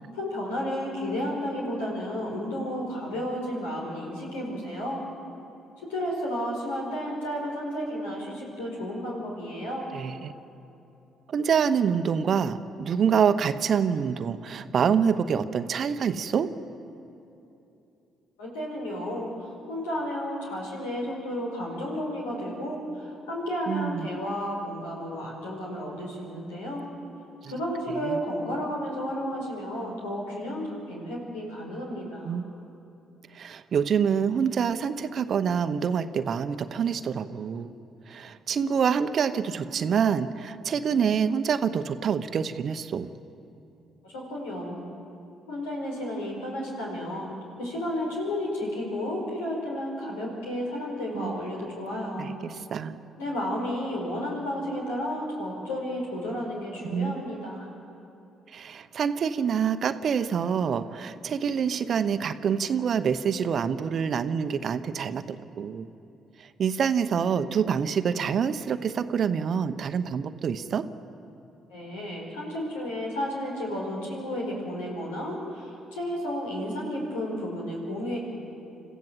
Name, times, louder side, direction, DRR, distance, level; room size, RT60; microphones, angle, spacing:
voice 1, 0.1-5.0 5.8-9.9 18.4-26.8 27.5-32.4 44.0-44.8 45.5-52.3 53.2-57.7 71.7-78.2, equal, 85° left, -2 dB, 4.9 m, -32 dB
voice 2, 9.9-10.4 11.3-16.5 23.7-24.1 28.1-28.2 32.3-32.5 33.3-37.7 38.1-43.1 51.1-51.3 52.2-53.0 56.8-57.1 58.5-65.9 66.4-70.8, right 7 dB, 55° right, 11 dB, 0.9 m, -26 dB
26.5 x 14.5 x 7.6 m, 2.8 s
hypercardioid pair, 50°, 0 cm